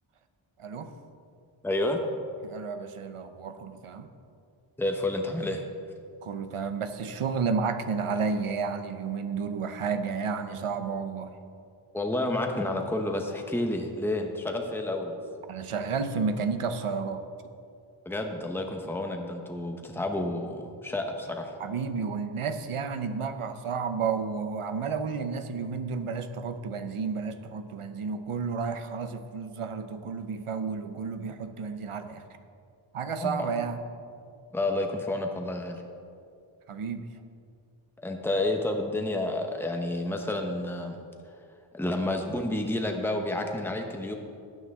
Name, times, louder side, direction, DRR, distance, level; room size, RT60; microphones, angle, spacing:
voice 1, 0.6-0.9 2.4-4.1 6.2-11.4 15.5-17.2 21.6-32.2 32.9-33.8 36.7-37.1, right 5 dB, 80° right, 9 dB, 0.8 m, -31 dB
voice 2, 1.6-2.0 4.8-5.6 11.9-15.2 18.0-21.5 33.2-33.5 34.5-35.8 38.0-41.0 41.7-44.1, left 1 dB, 5° left, 3 dB, 0.9 m, -30 dB
13.0 x 9.2 x 3.6 m, 2.4 s
wide cardioid pair, 75°, 50 cm